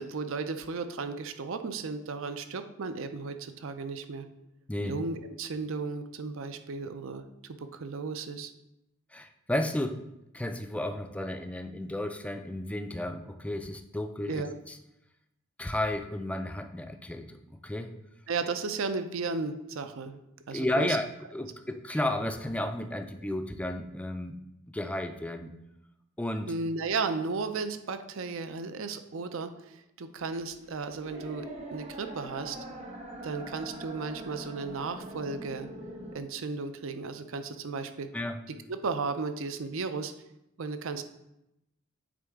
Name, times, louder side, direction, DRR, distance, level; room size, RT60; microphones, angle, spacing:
voice 1, 0.0-4.3 4.8-8.5 14.3-14.6 18.3-20.2 20.5-21.0 26.5-31.5 31.7-32.6 33.2-35.7 36.1-38.1 38.7-40.1 40.6-41.0, right 4 dB, 70° right, 9 dB, 0.5 m, -34 dB
voice 2, 9.1-10.0 10.3-14.4 14.7-14.8 15.6-17.9 20.5-21.1 21.3-24.4 24.7-25.5 26.2-26.5 38.1-38.4, left 1 dB, 5° left, 6 dB, 0.4 m, -33 dB
sound 1, 30.2-36.2, right 1 dB, 35° right, 1.0 m, -43 dB
8.5 x 3.8 x 3.5 m, 0.86 s
head